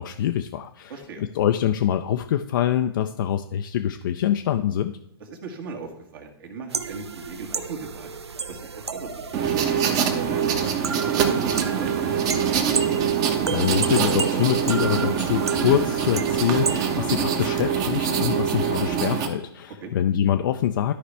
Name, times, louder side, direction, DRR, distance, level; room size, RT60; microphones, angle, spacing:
voice 1, 0.0-0.9 1.3-4.9 13.5-20.9, left 10 dB, 50° left, 6 dB, 0.5 m, -24 dB
voice 2, 0.9-1.2 5.2-8.1 8.5-10.6 11.0-12.6 19.8-19.9, right 4 dB, 60° right, 0 dB, 1.8 m, -38 dB
sound 1, 6.7-17.0, right 5 dB, 85° right, 0.6 m, -32 dB
sound 2, 9.3-19.3, right 7 dB, 30° right, 1.0 m, -24 dB
13.0 x 5.0 x 3.3 m, 0.80 s
hypercardioid pair, 125°, 13 cm